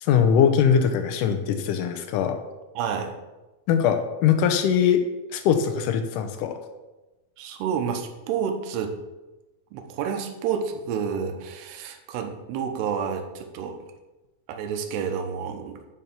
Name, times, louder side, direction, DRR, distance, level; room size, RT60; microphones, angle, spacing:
voice 1, 0.0-2.4 3.7-5.0 5.3-6.6, left 8 dB, 80° left, 7 dB, 1.9 m, -21 dB
voice 2, 2.8-3.1 7.4-9.0 9.7-13.8 14.5-15.8, right 7 dB, 90° right, 5 dB, 3.1 m, -29 dB
10.5 x 5.5 x 5.9 m, 1.1 s
omnidirectional pair, 4.6 m